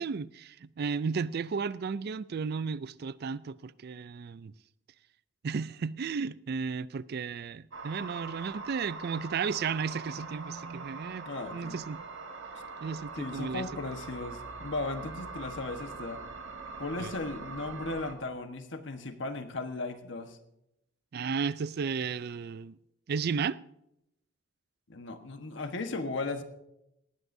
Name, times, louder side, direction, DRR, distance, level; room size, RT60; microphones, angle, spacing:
voice 1, 0.0-4.5 5.4-11.3 11.5-12.1 12.8-13.6 17.0-17.1 21.1-22.8 23.1-23.6, right 5 dB, 55° right, 0.4 m, -34 dB
sound 1, 7.7-18.1, right 4 dB, 85° right, 1.5 m, -43 dB
voice 2, 11.2-11.8 13.1-16.2 16.8-20.4 24.9-26.4, left 3 dB, 70° left, 1.3 m, -36 dB
18.5 x 15.5 x 2.7 m
head